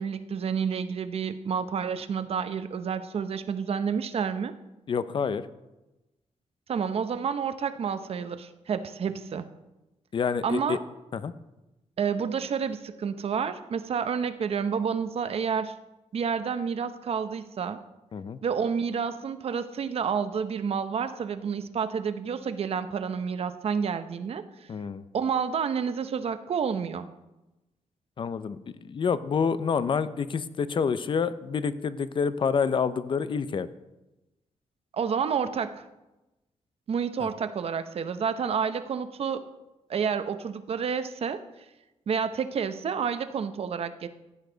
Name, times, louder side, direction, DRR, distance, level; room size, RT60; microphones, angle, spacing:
voice 1, 0.0-4.5 6.7-9.5 10.4-10.8 12.0-15.7 16.1-17.8 18.4-24.7 25.1-27.1 34.9-35.8 36.9-39.5 39.9-41.4 42.1-44.1, right 6 dB, 55° right, 11 dB, 0.8 m, -29 dB
voice 2, 4.9-5.5 10.1-10.8 11.1-11.3 18.1-18.4 24.7-25.0 28.2-28.6 28.8-33.7, left 6 dB, 45° left, 14 dB, 0.6 m, -28 dB
15.5 x 9.0 x 3.9 m, 1.0 s
cardioid pair, 110°, 12 cm